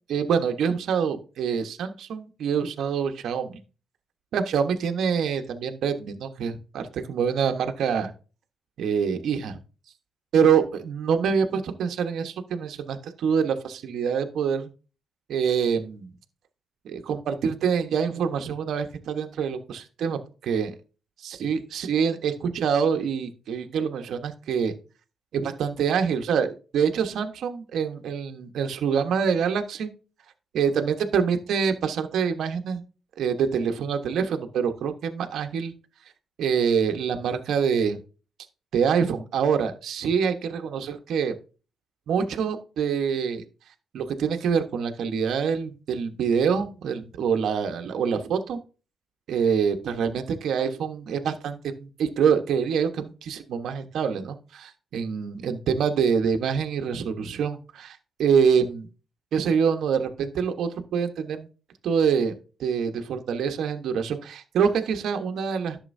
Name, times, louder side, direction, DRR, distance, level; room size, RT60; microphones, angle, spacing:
voice 1, 0.1-3.6 4.3-8.1 8.8-9.6 10.3-14.7 15.3-16.1 16.8-20.7 21.2-24.7 25.3-29.9 30.5-32.8 33.2-35.7 36.4-38.0 38.7-41.3 42.1-43.4 43.9-48.6 49.3-58.9 59.3-61.5 61.8-65.8, right 6 dB, 70° right, 6 dB, 1.2 m, -25 dB
11.0 x 6.8 x 2.7 m, 0.34 s
cardioid pair, 90°, 0 cm